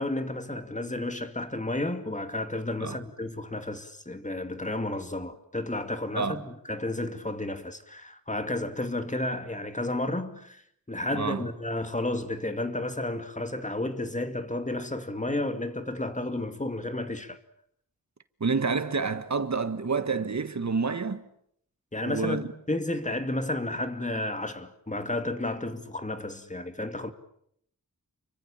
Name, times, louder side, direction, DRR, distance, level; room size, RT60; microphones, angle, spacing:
voice 1, 0.0-10.6 10.9-17.4 21.9-27.1, left 2 dB, 20° left, 2.4 m, -32 dB
voice 2, 11.1-11.4 18.4-21.2 22.0-22.4, right 4 dB, 55° right, 1.5 m, -28 dB
30.0 x 24.0 x 7.4 m
wide cardioid pair, 80°, 34 cm